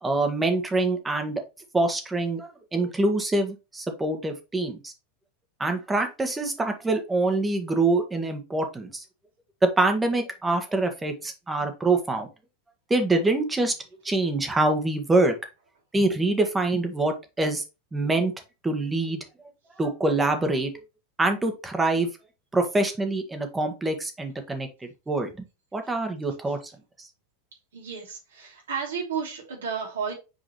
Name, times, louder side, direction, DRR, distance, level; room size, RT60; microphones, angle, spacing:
voice 1, 0.0-1.4 1.7-4.9 5.6-9.0 9.6-12.3 12.9-13.7 14.0-15.3 15.9-17.6 17.9-18.3 18.6-19.2 19.8-20.8 21.2-22.1 22.5-25.3 25.7-26.7 27.0-27.1, right 2 dB, 15° right, 6 dB, 1.7 m, -25 dB
voice 2, 27.7-30.1, right 6 dB, 80° right, -2 dB, 3.2 m, -32 dB
6.7 x 4.8 x 3.2 m, 0.28 s
hypercardioid pair, 95°, 0 cm